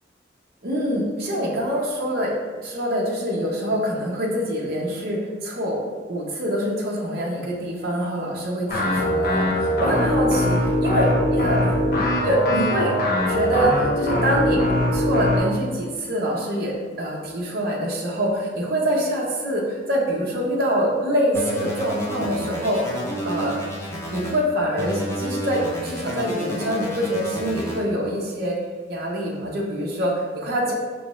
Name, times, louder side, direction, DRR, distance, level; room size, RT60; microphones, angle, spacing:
voice 1, 0.6-2.3 2.6-5.8 6.1-11.8 12.2-12.9 13.3-14.6 14.9-22.8 23.2-23.6 24.1-28.6 28.9-30.7, equal, 55° right, -3 dB, 0.8 m, -25 dB
sound 1, 8.7-15.4, left 1 dB, 55° left, 0.8 m, -22 dB
sound 2, 21.3-24.4 24.8-27.8, equal, 15° left, 0.7 m, -31 dB
5.0 x 3.1 x 3.1 m, 1.5 s
head